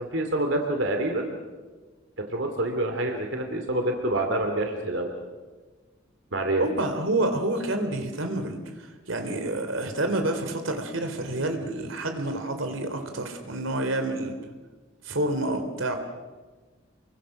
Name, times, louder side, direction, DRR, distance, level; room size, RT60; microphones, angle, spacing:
voice 1, 0.0-1.4 2.3-5.1 6.3-6.7, right 1 dB, 65° right, 4 dB, 2.6 m, -27 dB
voice 2, 6.6-14.3 15.0-15.9, right 2 dB, 85° right, 6 dB, 3.2 m, -28 dB
29.0 x 23.5 x 6.4 m, 1.3 s
head